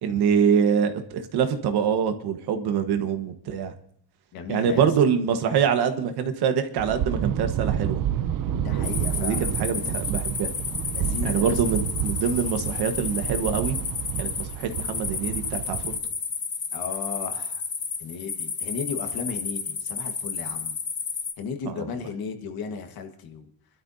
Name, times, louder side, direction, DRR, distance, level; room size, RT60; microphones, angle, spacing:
voice 1, 0.0-3.7 4.5-8.0 9.1-10.5 11.2-13.8 14.2-15.9 21.6-21.9, right 7 dB, 65° right, 7 dB, 1.5 m, -25 dB
voice 2, 4.3-4.9 8.6-9.5 10.9-11.6 16.7-17.6 18.0-20.7 21.4-23.5, left 6 dB, 55° left, 5 dB, 1.6 m, -35 dB
sound 1, 6.8-16.0, right 10 dB, 50° right, 0.7 m, -29 dB
sound 2, 8.8-21.3, left 5 dB, 25° left, 1.0 m, -32 dB
27.0 x 12.0 x 2.8 m, 0.66 s
cardioid pair, 175°, 42 cm